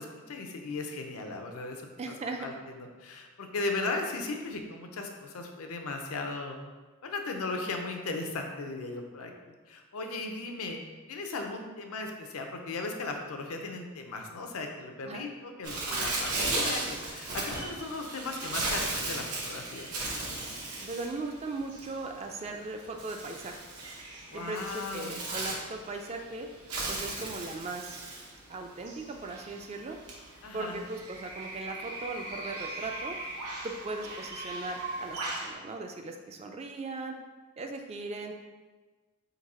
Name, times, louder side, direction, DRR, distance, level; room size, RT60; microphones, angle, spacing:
voice 1, 0.0-2.1 2.4-6.6 7.0-9.3 9.7-10.8 11.1-19.9 24.3-25.2 30.4-30.8, left 3 dB, 75° left, 3 dB, 0.5 m, -37 dB
voice 2, 2.0-2.5 15.0-15.2 20.8-23.5 24.3-26.5 26.9-28.0 28.5-30.0 30.5-33.2 33.6-37.2 37.6-38.3, right 3 dB, 30° right, 4 dB, 0.3 m, -38 dB
Bird, 15.6-35.5, right 2 dB, 90° right, 0.9 m, -37 dB
3.9 x 2.6 x 4.1 m, 1.3 s
head